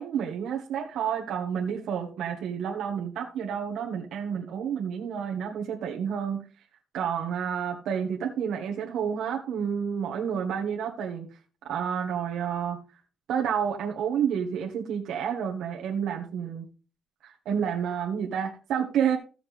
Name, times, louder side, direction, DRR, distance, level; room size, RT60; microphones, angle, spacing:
voice 1, 0.0-6.4 6.9-11.3 11.6-12.8 13.3-16.6 17.2-19.2, right 8 dB, 85° right, 1.5 m, -30 dB
15.0 x 7.0 x 3.4 m
cardioid pair, 150°, 0 cm